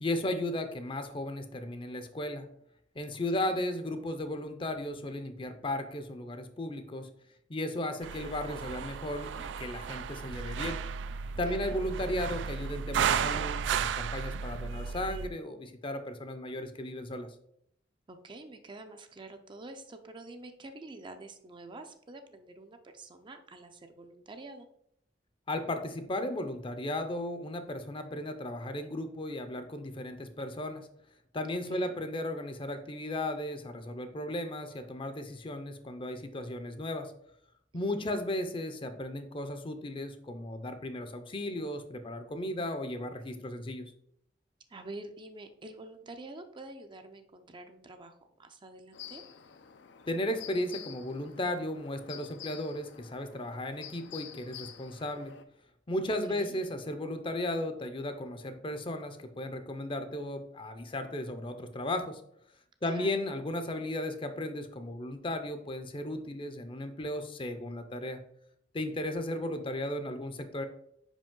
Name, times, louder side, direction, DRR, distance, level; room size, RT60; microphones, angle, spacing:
voice 1, 0.0-2.4 2.9-7.1 7.5-10.8 11.4-17.3 25.5-30.9 31.3-37.1 37.7-43.9 50.1-55.3 55.9-62.2 62.8-68.2 68.7-70.6, left 1 dB, 30° left, 8 dB, 0.6 m, -35 dB
voice 2, 3.3-3.7 11.3-11.8 18.1-24.7 31.5-31.9 37.7-38.2 44.7-49.2 56.3-56.6 62.8-63.2, right 2 dB, 25° right, 7 dB, 0.5 m, -47 dB
sound 1, 8.0-15.3, right 7 dB, 90° right, 0.3 m, -34 dB
sound 2, 48.9-55.4, left 9 dB, 75° left, 0.5 m, -49 dB
5.1 x 5.1 x 3.7 m, 0.70 s
head